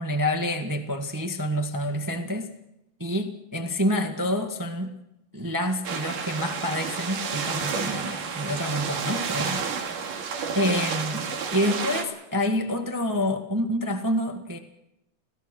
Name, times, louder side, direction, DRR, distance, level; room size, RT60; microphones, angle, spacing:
voice 1, 0.0-2.5 3.0-4.9 5.3-9.7 10.5-14.6, left 1 dB, 25° right, 4 dB, 0.4 m, -27 dB
sound 1, 5.8-12.0, right 6 dB, 85° right, 3.7 m, -30 dB
26.5 x 17.0 x 6.3 m, 0.89 s
omnidirectional pair, 3.6 m